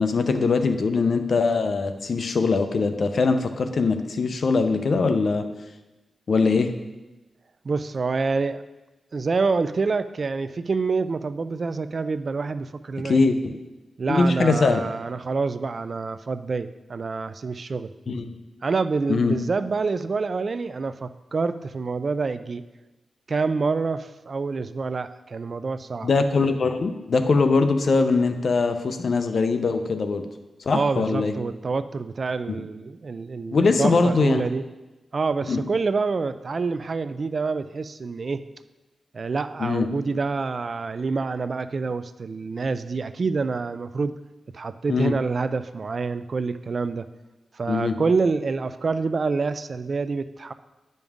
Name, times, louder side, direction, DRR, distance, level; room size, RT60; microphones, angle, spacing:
voice 1, 0.0-5.5 6.3-6.7 13.0-13.6 14.1-14.8 18.1-18.3 19.1-19.4 26.0-30.3 30.7-31.3 32.5-32.6 33.5-34.4 35.5-35.6 39.6-39.9 44.9-45.1 47.7-48.0, left 4 dB, 60° left, 8 dB, 0.6 m, -22 dB
voice 2, 7.6-8.6 9.1-13.2 14.0-18.2 18.6-22.6 23.3-26.1 30.7-34.6 35.1-38.4 39.1-44.1 44.5-47.1 47.5-50.5, right 4 dB, 45° right, 12 dB, 0.3 m, -27 dB
10.5 x 5.3 x 3.6 m, 1.1 s
wide cardioid pair, 100°, 0 cm